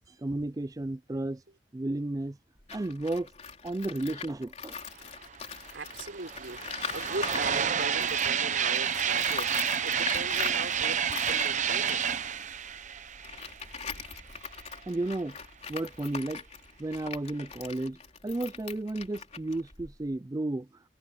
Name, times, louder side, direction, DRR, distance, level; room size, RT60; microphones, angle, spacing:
voice 1, 0.2-1.4 1.7-2.4 2.7-3.3 3.6-4.8 14.9-15.4 15.7-16.4 16.8-18.0 18.2-20.7, right 2 dB, 20° right, 0.4 m, -33 dB
Tools, 2.6-8.4 8.7-20.2, left 6 dB, 40° left, 3.5 m, -42 dB
sound 1, 5.3-5.4 5.6-14.2, right 8 dB, 45° right, 0.9 m, -30 dB
voice 2, 5.7-12.1, right 2 dB, 80° right, 3.8 m, -40 dB
head